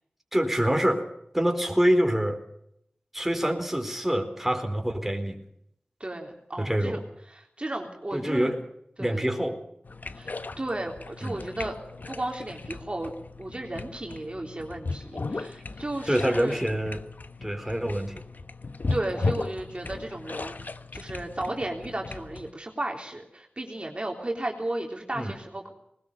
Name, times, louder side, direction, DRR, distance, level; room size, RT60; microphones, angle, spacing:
voice 1, 0.3-1.0 1.3-2.4 3.1-5.4 6.6-7.0 8.1-8.6 9.0-9.6 11.2-11.4 16.1-17.0 17.4-18.2 25.1-25.3, equal, 5° right, 5 dB, 4.2 m, -26 dB
voice 2, 6.0-7.0 7.3-8.5 9.0-9.2 10.2-11.8 12.1-13.1 13.4-16.6 18.9-25.7, right 1 dB, 35° right, 1 dB, 3.5 m, -34 dB
sound 1, 9.8-22.5, left 3 dB, 65° left, 1.2 m, -36 dB
20.5 x 20.0 x 6.9 m, 0.74 s
wide cardioid pair, 55°, 3 cm